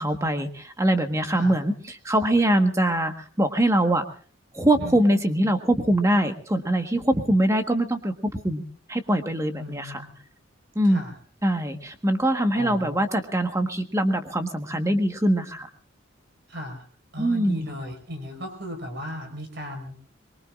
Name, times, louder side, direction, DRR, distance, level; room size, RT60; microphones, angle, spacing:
voice 1, 0.0-4.0 4.5-8.6 8.9-10.0 10.7-11.0 11.4-15.7 17.2-17.7, right 1 dB, 15° right, 6 dB, 1.4 m, -23 dB
voice 2, 9.6-10.2 10.9-11.1 12.5-12.9 16.5-16.9 17.1-20.0, equal, 55° right, 4 dB, 4.9 m, -36 dB
24.0 x 22.5 x 2.5 m, 0.41 s
head